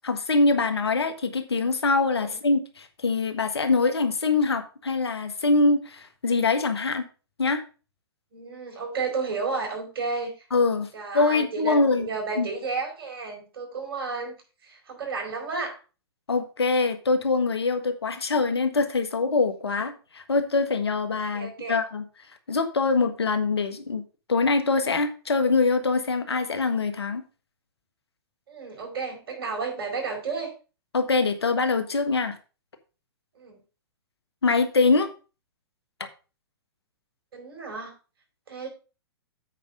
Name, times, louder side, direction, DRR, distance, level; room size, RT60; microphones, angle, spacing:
voice 1, 0.0-7.1 7.4-7.6 10.5-10.9 11.1-12.1 12.3-12.5 16.3-22.0 22.5-24.0 24.3-27.2 30.9-32.3 34.4-35.1, left 3 dB, 90° left, 8 dB, 1.5 m, -24 dB
voice 2, 8.3-10.3 10.9-14.4 14.6-15.8 21.3-21.8 28.5-30.5 33.4-33.6 37.3-37.9 38.5-38.7, right 4 dB, 65° right, 1 dB, 4.9 m, -32 dB
8.3 x 5.2 x 5.0 m, 0.34 s
hypercardioid pair, 125°, 13 cm